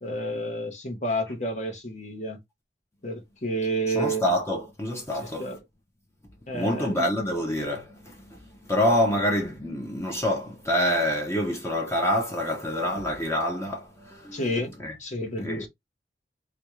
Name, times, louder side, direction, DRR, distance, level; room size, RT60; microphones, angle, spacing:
voice 1, 0.0-2.4 3.0-4.2 5.4-5.6 6.5-7.0 14.3-14.7 15.0-15.7, right 1 dB, 45° left, 1.1 m, -30 dB
voice 2, 3.9-5.6 6.5-14.4 14.8-15.0 15.4-15.7, left 1 dB, 15° left, 0.8 m, -27 dB
4.1 x 2.3 x 3.0 m
head